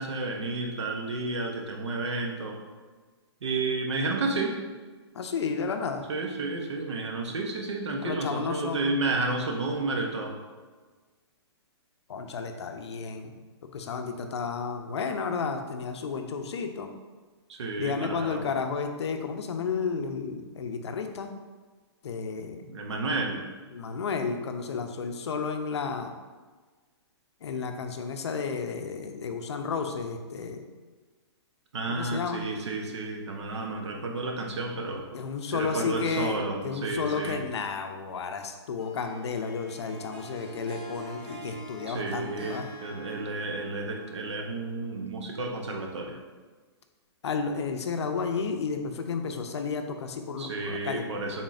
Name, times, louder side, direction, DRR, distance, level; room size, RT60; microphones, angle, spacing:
voice 1, 0.0-2.6 3.4-4.6 6.1-10.4 17.5-18.4 22.6-23.4 31.7-35.0 35.5-37.4 41.9-46.2 50.4-51.4, right 3 dB, 80° right, 2 dB, 0.8 m, -31 dB
voice 2, 5.1-6.1 8.0-9.0 12.1-13.3 13.7-16.9 17.8-21.3 22.0-22.6 23.7-26.1 27.4-30.7 31.9-32.4 35.1-36.3 36.6-42.7 47.2-51.2, left 5 dB, 70° left, 5 dB, 0.5 m, -32 dB
Harp, 38.8-44.6, right 2 dB, 25° right, 0.4 m, -44 dB
3.6 x 2.4 x 4.0 m, 1.4 s
hypercardioid pair, 180°, 14 cm